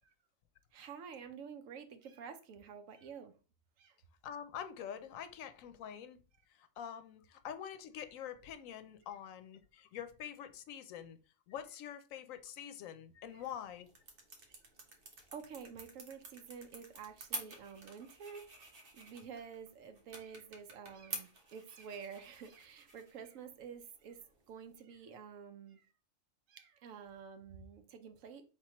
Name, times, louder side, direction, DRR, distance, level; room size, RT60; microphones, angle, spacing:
voice 1, 0.7-3.3 3.8-4.0 13.3-13.4 15.3-18.5 18.9-25.9 26.5-28.4, right 6 dB, 80° right, 1.1 m, -50 dB
voice 2, 4.2-6.2 6.5-11.2 11.5-13.9, left 9 dB, 90° left, 1.0 m, -46 dB
sound 1, 13.3-24.8, right 3 dB, 50° right, 1.1 m, -50 dB
4.5 x 3.6 x 2.9 m
omnidirectional pair, 1.3 m